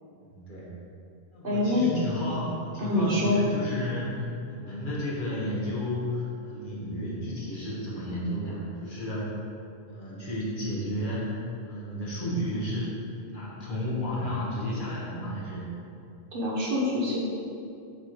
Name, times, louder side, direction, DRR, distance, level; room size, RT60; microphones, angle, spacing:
voice 1, 0.2-0.7 1.3-9.3 9.9-12.9 13.2-15.7, left 1 dB, 50° left, -7 dB, 1.5 m, -32 dB
voice 2, 1.4-1.9 2.8-3.4 16.3-17.2, left 1 dB, 60° right, -5 dB, 1.1 m, -25 dB
6.7 x 3.3 x 4.5 m, 2.6 s
omnidirectional pair, 1.1 m